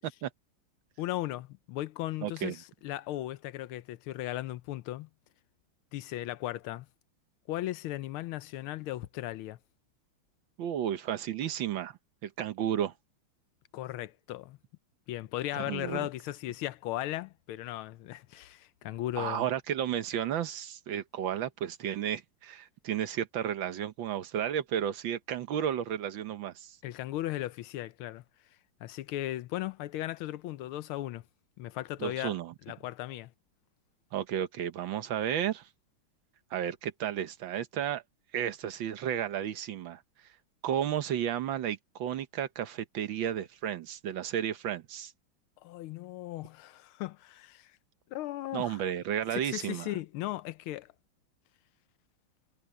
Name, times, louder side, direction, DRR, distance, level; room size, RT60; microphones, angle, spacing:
voice 1, 1.0-5.1 5.9-6.9 7.5-9.6 13.7-14.6 15.1-19.4 26.8-28.2 28.8-31.2 31.6-32.3 32.7-33.3 45.6-47.7 48.1-48.8 49.3-50.9, left 15 dB, 85° left, 1.5 m, -37 dB
voice 2, 2.2-2.6 10.6-12.9 15.6-16.1 19.2-26.8 32.0-32.5 34.1-35.7 36.5-38.0 38.3-40.0 40.6-45.1 48.5-49.9, right 10 dB, 70° right, 1.6 m, -33 dB
omnidirectional pair, 2.3 m